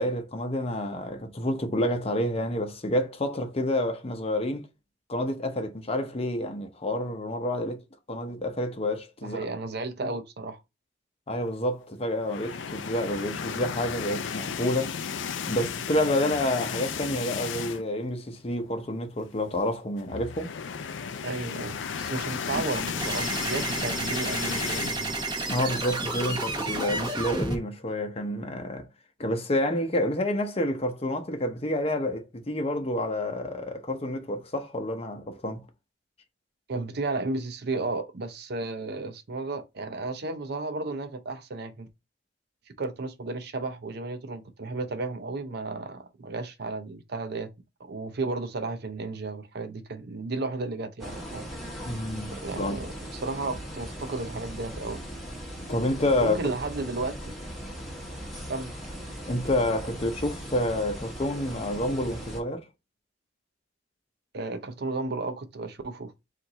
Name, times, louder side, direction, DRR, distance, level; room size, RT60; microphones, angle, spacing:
voice 1, 0.0-4.7 5.1-7.8 8.1-9.4 10.0-10.1 11.3-15.0 15.5-20.5 25.5-28.9 29.2-35.6 51.8-52.8 55.7-56.4 59.3-62.6, left 1 dB, 30° left, 0.7 m, -29 dB
voice 2, 9.2-10.6 21.2-25.2 36.7-41.9 42.8-47.5 47.8-51.5 52.3-55.0 56.2-57.3 58.5-58.7 64.3-66.1, right 3 dB, 60° right, 0.6 m, -33 dB
sound 1, 12.2-18.0 18.4-18.6 18.8-18.9 20.0-25.0, left 7 dB, 80° left, 0.4 m, -34 dB
sound 2, 22.5-27.6, right 2 dB, 25° right, 1.0 m, -31 dB
sound 3, 51.0-62.4, equal, ahead, 1.2 m, -39 dB
4.4 x 2.5 x 3.9 m
head